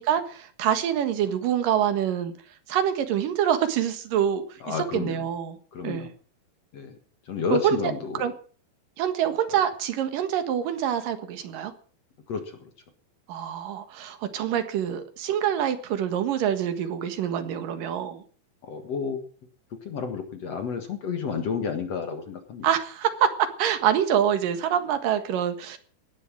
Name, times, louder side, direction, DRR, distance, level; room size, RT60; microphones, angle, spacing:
voice 1, 0.0-2.3 2.7-5.6 5.8-6.1 7.5-8.3 9.0-11.7 13.3-18.2 22.6-25.8, right 9 dB, 65° right, 9 dB, 3.1 m, -26 dB
voice 2, 4.6-5.2 5.7-6.1 6.7-6.9 7.3-8.2 12.3-12.4 18.7-19.2 19.9-22.6, left 6 dB, 50° left, 6 dB, 2.4 m, -30 dB
17.5 x 11.0 x 6.2 m, 0.42 s
omnidirectional pair, 4.3 m